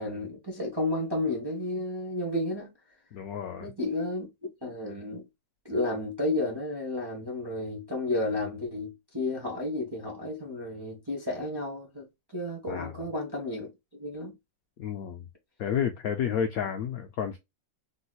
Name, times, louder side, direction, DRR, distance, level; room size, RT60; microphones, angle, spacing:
voice 1, 0.0-2.7 3.6-4.3 4.6-5.2 5.6-12.1 12.3-13.7 14.0-14.3, left 2 dB, 20° right, 0.7 m, -32 dB
voice 2, 3.1-3.7 12.7-13.0 14.8-15.2 15.6-17.4, left 8 dB, 75° left, 0.8 m, -31 dB
3.7 x 2.8 x 2.3 m
omnidirectional pair, 2.0 m